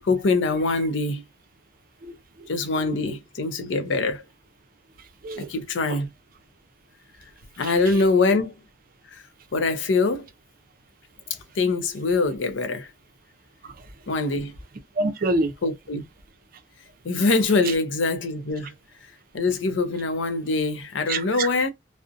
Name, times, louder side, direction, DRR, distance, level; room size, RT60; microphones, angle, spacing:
voice 1, 0.0-1.2 2.5-4.2 5.4-6.1 7.6-8.5 9.1-9.2 9.5-10.3 11.6-12.9 14.1-14.5 15.6-16.0 17.0-18.7 19.3-21.7, left 3 dB, 85° left, 0.5 m, -23 dB
voice 2, 2.0-2.5 5.2-5.5 5.9-6.0 7.6-7.7 13.6-13.7 15.0-15.5 17.6-17.7 21.1-21.5, right 2 dB, 50° right, 0.5 m, -27 dB
2.6 x 2.0 x 2.4 m
head